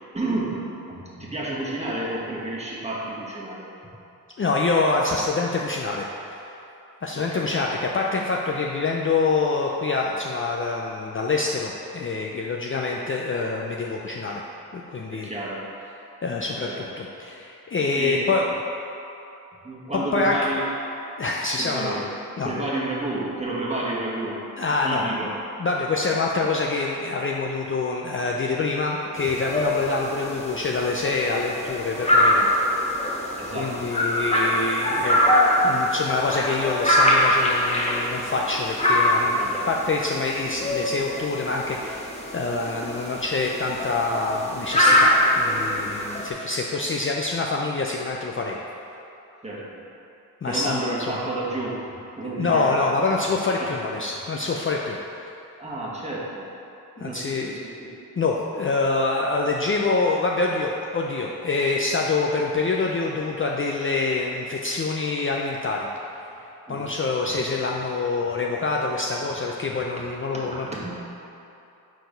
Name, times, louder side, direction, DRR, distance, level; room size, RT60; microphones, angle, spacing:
voice 1, 0.1-3.7 7.1-7.6 15.1-15.6 16.7-16.9 17.9-18.4 19.6-20.7 21.6-22.1 22.4-24.4 24.8-25.4 33.4-33.9 39.4-39.7 49.4-49.8 50.4-52.8 53.6-53.8 55.6-56.5 57.0-58.0 66.7-66.8 69.7-69.8 70.3-70.9, right 2 dB, 15° right, -6 dB, 1.4 m, -31 dB
voice 2, 4.4-6.0 6.3-6.5 7.0-14.4 14.7-15.3 16.2-18.4 19.9-20.4 21.2-22.0 22.4-22.5 24.6-25.3 25.6-32.5 33.5-35.2 35.6-48.6 50.4-51.0 52.2-55.0 55.2-55.3 57.0-57.5 58.2-65.9 66.7-70.9, left 3 dB, 35° left, -1 dB, 0.4 m, -26 dB
sound 1, 29.2-46.3, left 1 dB, 15° left, 1.0 m, -23 dB
4.6 x 4.0 x 5.1 m, 2.9 s
cardioid pair, 55°, 38 cm